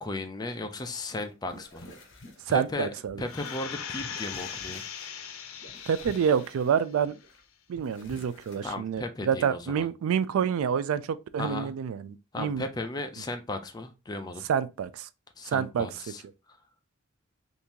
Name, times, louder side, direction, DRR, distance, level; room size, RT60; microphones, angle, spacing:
voice 1, 0.0-1.9 2.5-2.9 3.2-4.8 8.6-9.9 11.4-11.7 12.3-14.4 15.4-16.2, left 2 dB, 20° left, 0.4 m, -35 dB
sound 1, 1.1-3.6 4.0-5.1 5.4-7.4 7.7-8.8, left 1 dB, 60° left, 0.9 m, -49 dB
voice 2, 2.5-3.2 5.9-7.1 7.7-12.6 14.5-15.1 15.5-15.9, right 7 dB, 80° right, 0.3 m, -28 dB
sound 2, 3.3-6.7 7.1-7.2, left 7 dB, 80° left, 0.6 m, -39 dB
3.6 x 2.6 x 2.8 m
head